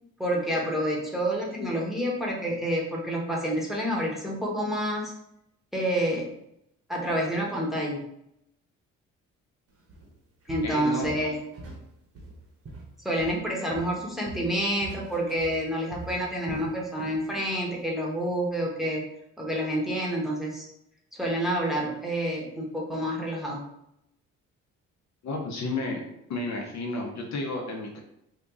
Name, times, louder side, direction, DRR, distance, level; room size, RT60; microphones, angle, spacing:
voice 1, 0.2-5.1 5.7-6.2 6.9-8.0 10.5-11.4 13.0-19.0 19.4-20.7 21.1-23.6, equal, ahead, -3 dB, 0.9 m, -28 dB
Walk footsteps, 9.9-10.1 10.5-11.9 12.2-13.5 13.7-17.2 17.5-17.8 18.3-18.4, right 2 dB, 50° right, 1.0 m, -42 dB
voice 2, 10.6-11.3 25.2-26.0 26.3-28.0, left 2 dB, 65° left, 1 dB, 0.8 m, -32 dB
2.9 x 2.5 x 3.5 m, 0.77 s
cardioid pair, 90°, 30 cm